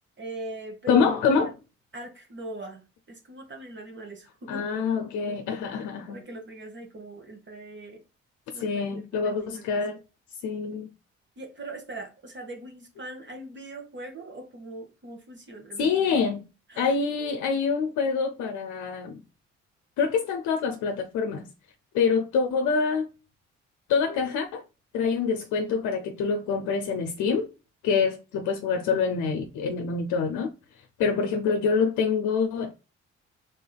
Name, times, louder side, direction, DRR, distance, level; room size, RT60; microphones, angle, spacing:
voice 1, 0.2-1.5 1.9-2.8 3.1-5.1 6.1-8.0 8.5-8.6 8.9-9.8 11.4-15.9 16.7-17.1, right 2 dB, 35° right, 1.3 m, -41 dB
voice 2, 0.9-1.5 4.5-6.2 8.5-10.0 10.4-10.9 15.8-16.4 16.8-19.2 20.0-21.5 21.9-23.1 23.9-24.6 24.9-27.5 27.8-30.5 31.0-32.7, left 5 dB, 70° left, 0.6 m, -26 dB
3.8 x 3.6 x 2.3 m
hypercardioid pair, 55°, 30 cm